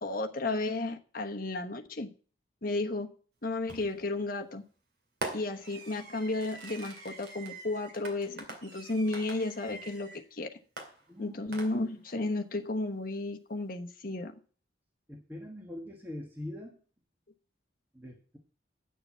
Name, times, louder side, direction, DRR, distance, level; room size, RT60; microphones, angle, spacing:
voice 1, 0.0-2.1 2.6-3.1 3.4-4.6 5.3-10.5 11.2-14.4, left 2 dB, 45° left, 1.1 m, -33 dB
Fireworks, 3.7-4.1 5.2-10.3 10.8-12.1, right 2 dB, 55° right, 2.3 m, -44 dB
voice 2, 15.1-16.8 17.9-18.4, left 1 dB, 10° right, 1.4 m, -43 dB
9.3 x 6.8 x 7.3 m
head